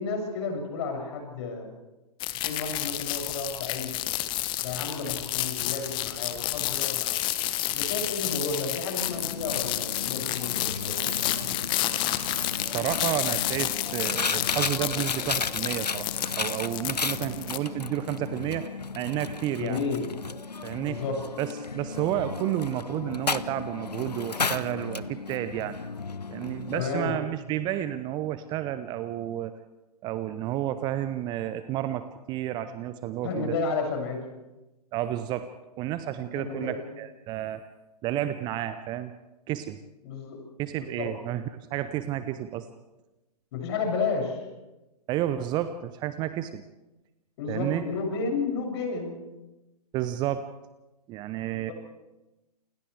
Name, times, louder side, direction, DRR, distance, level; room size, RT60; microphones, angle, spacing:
voice 1, 0.0-1.7 2.4-4.0 4.6-7.2 7.7-11.6 19.6-20.1 20.9-21.2 26.7-27.1 33.2-34.3 36.4-36.8 40.0-40.4 40.8-41.1 43.5-44.4 47.4-49.2 51.7-51.8, left 4 dB, 40° left, 2 dB, 7.0 m, -32 dB
sound 1, 2.2-17.6, left 15 dB, 25° left, 1.1 m, -30 dB
Coin (dropping), 9.1-26.9, left 4 dB, 80° left, 0.8 m, -34 dB
voice 2, 12.6-16.1 16.4-19.8 20.6-21.0 21.4-25.8 26.3-29.5 30.0-33.6 34.9-37.7 38.0-39.1 39.5-39.8 40.6-41.4 41.7-42.7 45.1-46.6 47.5-47.8 49.9-50.5 51.1-51.7, right 12 dB, 20° right, 12 dB, 0.7 m, -31 dB
28.5 x 28.0 x 3.4 m, 1.0 s
figure-of-eight pair, 115°, 20 cm